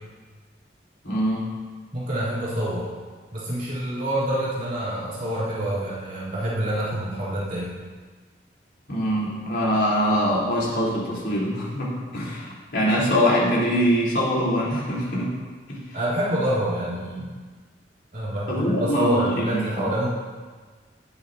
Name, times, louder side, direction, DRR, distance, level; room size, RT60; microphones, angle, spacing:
voice 1, 1.0-1.4 8.9-15.3 15.7-15.8 18.5-19.9, equal, 90° left, -7 dB, 3.6 m, -23 dB
voice 2, 1.9-2.9 3.3-7.8 15.9-17.3 18.1-20.1, right 1 dB, 50° right, -9 dB, 3.1 m, -27 dB
18.0 x 7.3 x 2.8 m, 1.5 s
head